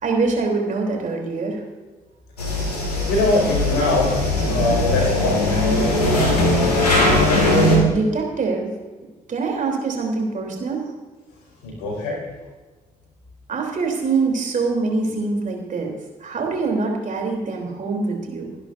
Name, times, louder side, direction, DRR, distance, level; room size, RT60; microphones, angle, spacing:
voice 1, 0.0-1.6 7.5-8.7 9.3-10.8 13.5-18.5, right 4 dB, 40° right, 1 dB, 3.4 m, -24 dB
sound 1, 2.4-7.8, left 1 dB, 85° left, 2.1 m, -19 dB
voice 2, 3.1-6.0 11.6-12.2, left 2 dB, 65° left, -1 dB, 5.2 m, -23 dB
24.0 x 11.0 x 2.7 m, 1.3 s
figure-of-eight pair, 40°, 19 cm